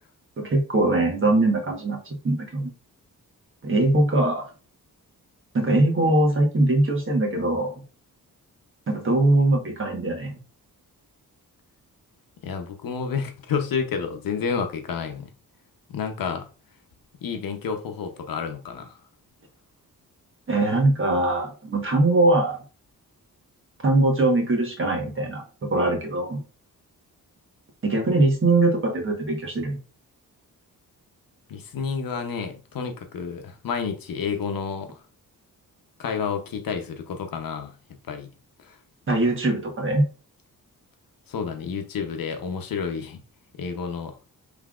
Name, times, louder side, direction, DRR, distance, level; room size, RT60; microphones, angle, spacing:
voice 1, 0.4-2.7 3.6-4.4 5.5-7.8 8.9-10.4 20.5-22.6 23.8-26.4 27.8-29.8 39.1-40.0, right 2 dB, 35° right, 1.2 m, -22 dB
voice 2, 12.4-15.3 15.9-16.5 17.2-19.0 31.5-35.0 36.0-37.8 38.1-38.3 38.6-38.8 41.3-43.2 43.6-44.2, left 6 dB, 75° left, 0.8 m, -30 dB
5.6 x 3.3 x 2.4 m
wide cardioid pair, 160°, 35 cm